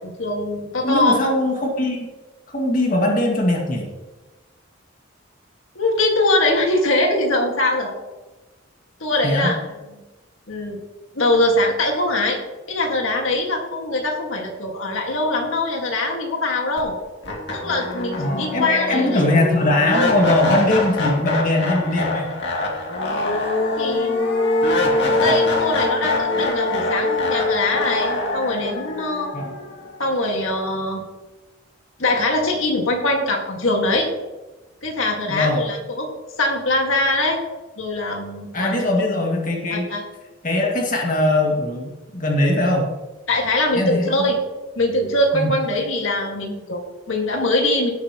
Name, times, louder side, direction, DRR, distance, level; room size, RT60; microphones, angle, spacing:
voice 1, 0.0-1.3 5.8-7.9 9.0-9.6 9.9-10.0 10.5-10.8 11.1-12.4 12.7-16.9 17.5-19.2 23.8-24.5 25.1-29.3 30.0-31.0 32.0-34.1 34.8-36.1 36.4-37.4 37.8-38.8 39.7-40.0 43.3-44.4 44.8-47.9, left 2 dB, 75° left, 1 dB, 1.9 m, -22 dB
voice 2, 0.8-2.1 2.5-3.9 9.2-9.5 18.2-22.3 29.3-29.5 35.3-35.6 38.5-39.9 40.4-42.9 43.7-44.1 45.3-45.5, left 1 dB, 40° left, 0 dB, 2.0 m, -20 dB
sound 1, 16.8-16.9 17.2-30.3, left 2 dB, 60° left, 2.4 m, -23 dB
17.0 x 8.2 x 3.0 m, 1.1 s
head